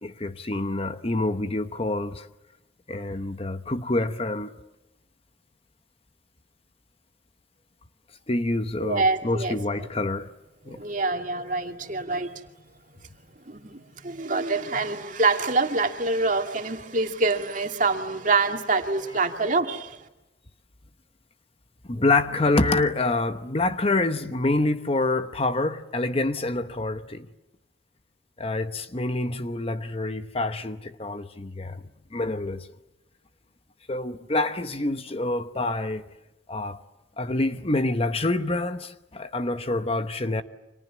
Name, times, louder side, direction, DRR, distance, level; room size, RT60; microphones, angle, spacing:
voice 1, 0.0-2.3 2.9-4.5 8.3-10.3 10.7-10.8 21.9-27.3 28.4-31.8 32.1-32.7 33.9-36.0 36.5-36.8 37.2-40.4, left 2 dB, 30° left, 1.0 m, -26 dB
voice 2, 8.8-9.6 10.7-12.4 13.5-20.0, right 3 dB, 45° right, 2.4 m, -25 dB
30.0 x 26.0 x 7.2 m
head